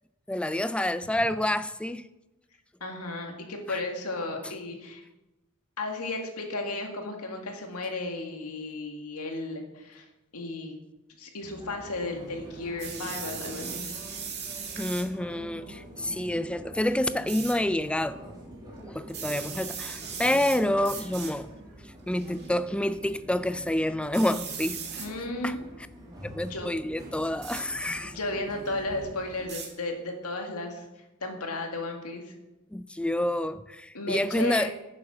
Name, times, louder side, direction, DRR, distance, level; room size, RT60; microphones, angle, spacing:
voice 1, 0.3-2.1 3.7-3.8 14.8-18.2 18.9-21.5 21.8-25.0 25.4-25.6 26.2-28.2 32.7-34.7, left 1 dB, 5° left, 13 dB, 0.3 m, -28 dB
voice 2, 2.8-5.0 5.8-10.0 10.3-10.8 11.2-13.8 25.0-25.6 26.5-26.7 28.1-30.9 31.2-32.3 33.9-34.7, left 2 dB, 90° left, 3 dB, 2.0 m, -34 dB
sound 1, 11.4-29.5, right 1 dB, 20° right, 2.5 m, -45 dB
sound 2, 12.8-15.1 17.3-17.5 19.1-20.6 20.8-21.3 22.1-22.5 24.1-25.1 27.4-27.6 29.5-29.7, right 7 dB, 50° right, 2.2 m, -38 dB
9.7 x 7.3 x 6.2 m, 1.0 s
head